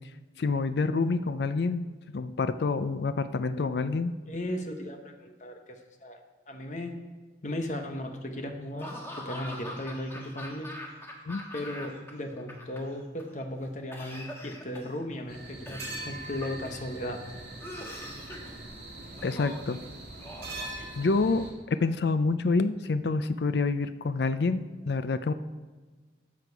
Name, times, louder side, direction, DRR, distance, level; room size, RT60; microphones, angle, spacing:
voice 1, 0.4-1.9 2.1-4.1 11.3-11.4 19.2-19.8 21.0-25.3, left 3 dB, 65° left, 11 dB, 0.5 m, -27 dB
voice 2, 4.3-6.2 6.5-7.0 7.4-10.7 11.5-17.2, left 1 dB, 40° left, 4 dB, 1.2 m, -36 dB
Laughter / Cough, 8.8-12.1 12.4-13.2 13.9-15.0 15.7-16.9 17.6-18.5 19.2-19.8 20.2-21.4, left 1 dB, 15° left, 1.4 m, -43 dB
sound 1, 15.3-21.5, right 2 dB, 55° right, 2.5 m, -42 dB
13.0 x 7.8 x 4.7 m, 1.4 s
head